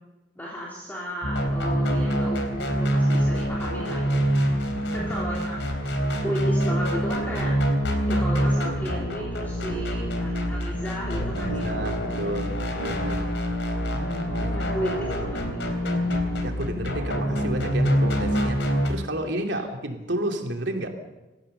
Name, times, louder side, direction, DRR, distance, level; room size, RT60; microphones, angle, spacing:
voice 1, 0.3-4.3 4.9-5.7 6.2-7.5 8.1-11.7 14.5-15.6 19.4-19.6, equal, 10° left, -5 dB, 3.4 m, -34 dB
sound 1, 1.2-18.9, equal, 75° left, 3.8 m, -25 dB
voice 2, 4.7-5.8 9.6-9.8 11.3-13.3 13.9-14.8 16.0-20.9, right 1 dB, 70° right, 4 dB, 2.8 m, -32 dB
26.5 x 15.0 x 6.8 m, 1.1 s
head